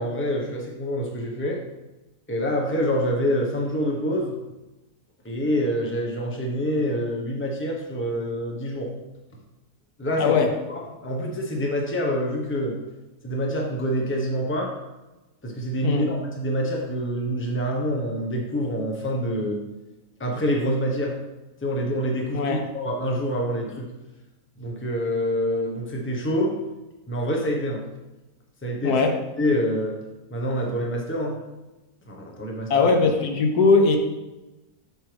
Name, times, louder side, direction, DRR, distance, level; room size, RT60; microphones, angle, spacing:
voice 1, 0.0-1.6 2.3-4.4 5.2-8.9 10.0-10.4 10.7-12.8 13.2-14.7 15.4-19.6 20.2-21.2 21.6-23.9 24.6-26.5 27.1-27.9 28.6-29.0 29.4-30.0 30.3-31.4 32.1-32.9, equal, 10° left, -1 dB, 1.0 m, -26 dB
voice 2, 32.7-34.0, left 4 dB, 80° left, 4 dB, 1.4 m, -19 dB
7.6 x 6.5 x 3.4 m, 1.0 s
omnidirectional pair, 1.7 m